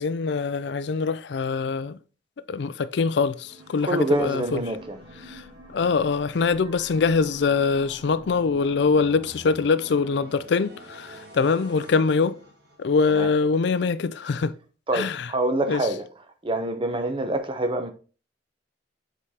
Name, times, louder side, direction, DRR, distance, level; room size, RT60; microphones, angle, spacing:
voice 1, 0.0-2.0 2.5-4.6 5.3-5.4 5.7-12.4 12.8-14.5 14.9-15.3 15.7-15.8, left 4 dB, 65° left, 0.4 m, -23 dB
sound 1, 3.0-13.2, equal, 60° right, 1.8 m, -46 dB
voice 2, 3.8-5.0 13.1-13.3 14.9-16.1 16.4-17.9, right 1 dB, 30° right, 0.7 m, -26 dB
7.7 x 4.7 x 2.8 m
head